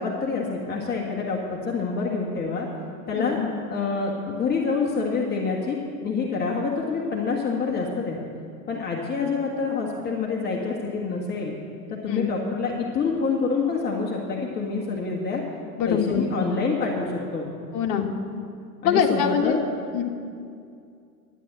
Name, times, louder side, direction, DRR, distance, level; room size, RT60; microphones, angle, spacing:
voice 1, 0.0-2.7 3.1-3.4 3.7-8.2 8.7-11.6 11.9-15.4 15.9-17.5 18.8-19.6, left 4 dB, 20° left, -2 dB, 1.6 m, -27 dB
voice 2, 3.1-3.5 12.1-12.3 15.8-16.2 17.7-18.1 18.8-19.7 19.9-20.0, left 7 dB, 45° left, 2 dB, 1.8 m, -23 dB
12.5 x 9.7 x 7.5 m, 2.4 s
hypercardioid pair, 120°, 48 cm